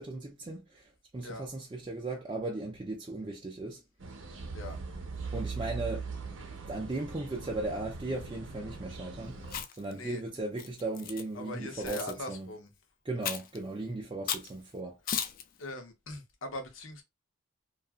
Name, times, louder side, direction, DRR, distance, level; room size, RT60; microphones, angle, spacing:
voice 1, 0.0-3.8 5.3-6.1 6.7-9.4 9.7-12.5 13.0-15.0, right 2 dB, 25° right, 0.4 m, -37 dB
sound 1, 4.0-9.6, right 4 dB, 65° right, 0.6 m, -40 dB
Chewing mastication, 9.4-9.9 10.6-11.2 11.9-12.1 13.2-13.6 14.3-14.5 15.1-15.4, left 8 dB, 45° left, 0.3 m, -35 dB
voice 2, 11.3-12.7 15.6-17.0, left 1 dB, 75° left, 0.7 m, -41 dB
2.8 x 2.3 x 2.3 m
head